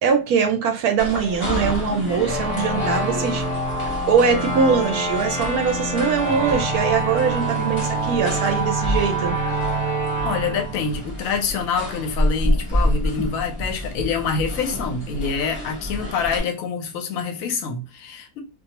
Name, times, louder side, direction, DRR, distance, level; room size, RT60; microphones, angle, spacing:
voice 1, 0.0-3.4 4.1-9.4, right 6 dB, 70° right, 1.0 m, -22 dB
sound 1, 1.0-16.4, left 1 dB, 25° left, 0.6 m, -29 dB
sound 2, 2.2-11.6, right 2 dB, 40° right, 0.5 m, -26 dB
voice 2, 10.2-18.4, left 5 dB, 70° left, 0.9 m, -26 dB
2.6 x 2.3 x 2.8 m
omnidirectional pair, 1.9 m